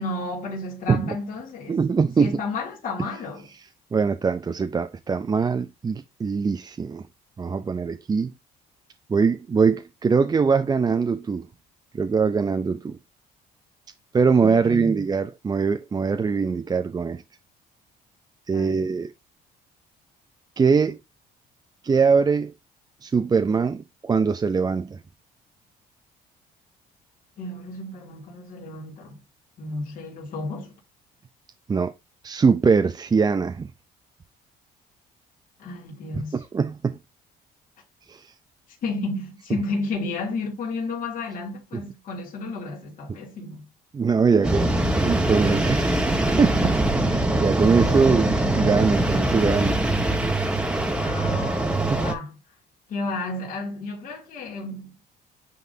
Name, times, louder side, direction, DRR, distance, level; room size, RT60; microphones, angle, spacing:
voice 1, 0.0-1.8 2.2-3.5 14.2-14.9 18.5-18.9 27.4-29.2 29.6-30.7 35.6-36.4 38.7-43.7 44.3-44.9 50.7-52.4 52.9-54.9, left 3 dB, 55° left, 2.9 m, -32 dB
voice 2, 1.7-2.3 3.9-7.0 7.4-8.3 9.1-11.5 11.9-13.0 14.1-17.2 18.5-19.1 20.6-21.0 21.8-22.5 23.0-25.0 31.7-31.9 32.2-33.7 36.1-36.2 36.5-37.0 38.1-38.2 43.9-44.7 45.0-46.1 46.4-49.8 51.9-52.0, right 5 dB, 25° right, 0.5 m, -22 dB
sound 1, 44.4-52.1, right 1 dB, 5° right, 1.4 m, -23 dB
9.2 x 3.9 x 2.7 m
cardioid pair, 110°, 17 cm